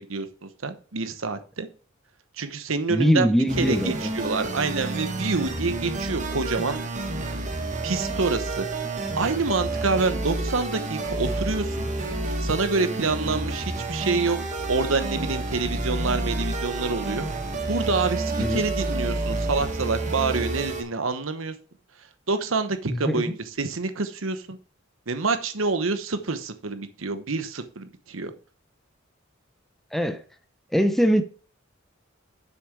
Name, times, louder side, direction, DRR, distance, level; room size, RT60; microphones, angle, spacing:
voice 1, 0.0-1.7 2.4-3.3 3.6-6.8 7.2-7.4 7.8-8.8 9.1-11.9 12.4-14.4 14.7-17.2 17.7-21.5 22.3-24.6 25.1-28.3, right 4 dB, 70° right, 1.0 m, -27 dB
voice 2, 2.9-4.1 18.4-18.6 22.9-23.4 29.9-30.2 30.7-31.2, equal, ahead, 0.7 m, -22 dB
sound 1, 3.5-20.8, right 2 dB, 40° right, 1.6 m, -29 dB
7.7 x 6.5 x 4.6 m
head